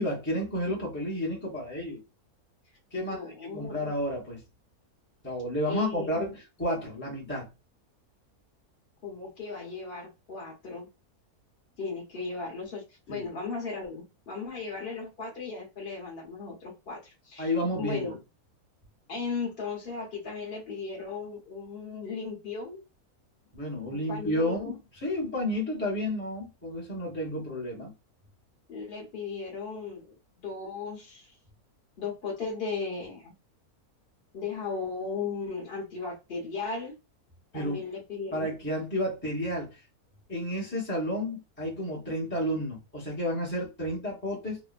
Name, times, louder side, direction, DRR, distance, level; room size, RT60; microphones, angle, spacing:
voice 1, 0.0-2.0 2.9-4.4 5.2-7.5 13.1-13.3 17.4-18.1 23.5-24.8 25.0-27.9 37.5-37.8 38.3-39.8 40.3-44.6, left 1 dB, 10° left, 0.7 m, -31 dB
voice 2, 3.0-3.9 5.7-6.3 9.0-10.9 11.8-17.5 17.8-18.2 19.1-22.8 23.9-24.8 28.7-31.4 32.0-33.3 34.3-37.0 37.5-38.5, left 4 dB, 45° left, 1.0 m, -36 dB
3.0 x 2.1 x 2.4 m
omnidirectional pair, 1.6 m